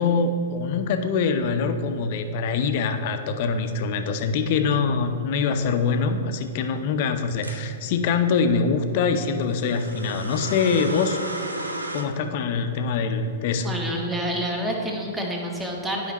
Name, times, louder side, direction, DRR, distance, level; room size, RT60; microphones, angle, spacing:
voice 1, 0.0-11.2 11.9-13.7, left 5 dB, 45° left, 7 dB, 0.6 m, -24 dB
sound 1, 7.4-7.6 9.5-12.0, right 1 dB, 85° right, 0.7 m, -33 dB
voice 2, 13.6-16.1, equal, 10° right, 0 dB, 1.2 m, -28 dB
11.5 x 5.1 x 3.0 m, 2.4 s
figure-of-eight pair, 105°, 0 cm